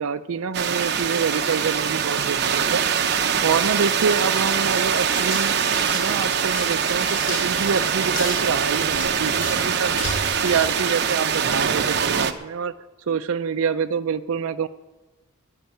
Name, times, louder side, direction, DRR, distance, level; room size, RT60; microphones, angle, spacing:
voice 1, 0.0-2.8 3.4-12.7 13.1-14.7, right 6 dB, 80° right, 8 dB, 0.5 m, -26 dB
sound 1, 0.5-12.3, right 7 dB, 50° right, 0.9 m, -23 dB
sound 2, 5.0-11.6, left 1 dB, 40° left, 3.3 m, -35 dB
12.5 x 10.0 x 8.9 m, 1.2 s
head